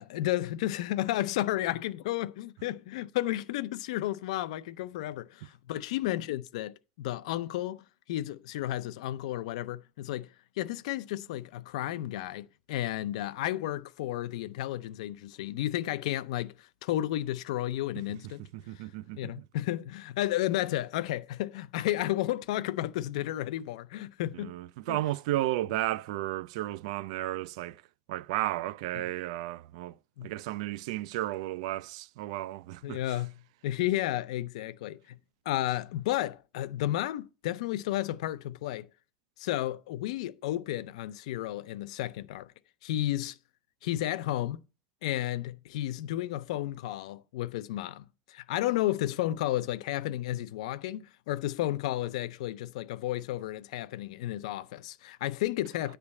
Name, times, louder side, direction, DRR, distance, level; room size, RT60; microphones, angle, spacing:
voice 1, 0.0-10.3 10.6-18.4 19.2-24.5 24.9-25.0 29.0-29.1 30.2-30.3 32.8-33.4 33.6-35.2 35.5-38.9 39.4-42.5 42.8-43.4 43.8-44.6 45.0-56.0, left 14 dB, 80° left, 0.5 m, -32 dB
voice 2, 18.5-19.4 24.3-27.8 28.1-30.0 30.2-33.2, right 15 dB, 65° right, 0.3 m, -33 dB
9.7 x 3.3 x 7.0 m
supercardioid pair, 170°, 3 cm